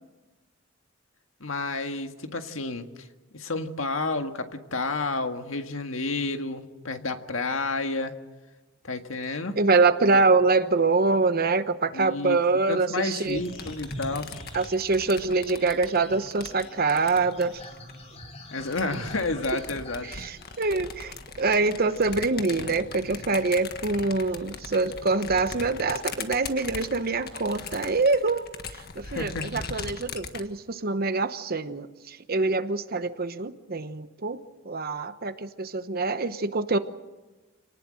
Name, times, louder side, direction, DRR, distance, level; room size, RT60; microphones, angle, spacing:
voice 1, 1.4-2.9 3.3-8.1 8.8-9.6 10.1-10.2 11.9-12.4 12.7-14.4 18.5-20.2 29.0-29.7, left 3 dB, 90° left, 6 dB, 1.8 m, -30 dB
voice 2, 9.6-13.4 14.5-17.6 20.1-28.5 28.8-36.8, right 3 dB, 50° right, 11 dB, 1.0 m, -25 dB
sound 1, 13.2-18.0 18.6-30.4, left 5 dB, 50° left, 1.6 m, -40 dB
sound 2, 13.3-26.4 26.7-27.4, left 1 dB, 35° left, 3.8 m, -46 dB
27.0 x 19.0 x 7.7 m, 1.2 s
head